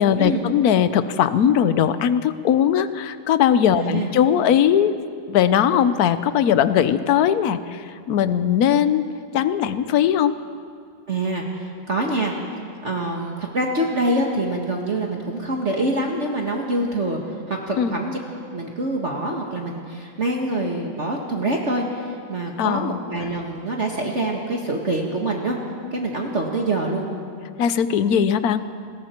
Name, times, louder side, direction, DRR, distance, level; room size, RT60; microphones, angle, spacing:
voice 1, 0.0-5.0 5.3-9.1 9.3-10.4 17.8-18.0 22.6-23.0 27.6-28.7, left 9 dB, 60° left, 12 dB, 1.2 m, -19 dB
voice 2, 3.8-4.1 11.1-12.4 12.8-18.2 18.5-25.6 25.9-27.1, right 1 dB, 40° right, 0 dB, 1.8 m, -25 dB
29.5 x 21.0 x 4.5 m, 2.2 s
omnidirectional pair, 2.0 m